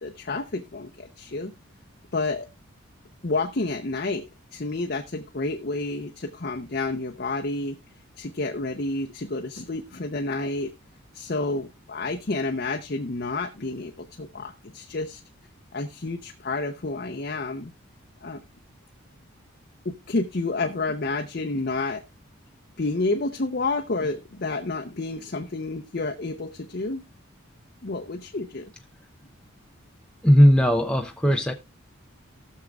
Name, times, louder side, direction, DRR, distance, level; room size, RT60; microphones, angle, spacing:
voice 1, 0.0-1.5 2.1-2.5 3.2-4.3 4.5-7.8 8.2-10.7 11.1-15.2 15.7-17.7 18.2-18.4 19.8-22.0 22.8-27.0 27.8-28.6, left 3 dB, 45° left, 0.7 m, -29 dB
voice 2, 30.2-31.5, equal, 5° left, 0.6 m, -17 dB
19.0 x 6.5 x 2.4 m
head